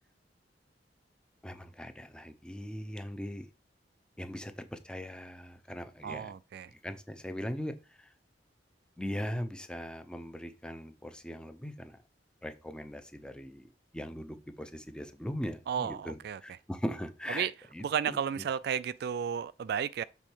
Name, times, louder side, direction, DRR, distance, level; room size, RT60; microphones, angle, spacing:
voice 1, 1.4-3.5 4.2-6.3 6.7-8.1 9.0-12.0 12.4-18.4, equal, 5° left, 0.7 m, -40 dB
voice 2, 6.0-6.7 15.7-16.4 17.3-17.5 17.8-20.0, right 8 dB, 60° right, 0.3 m, -33 dB
7.1 x 4.2 x 4.5 m
head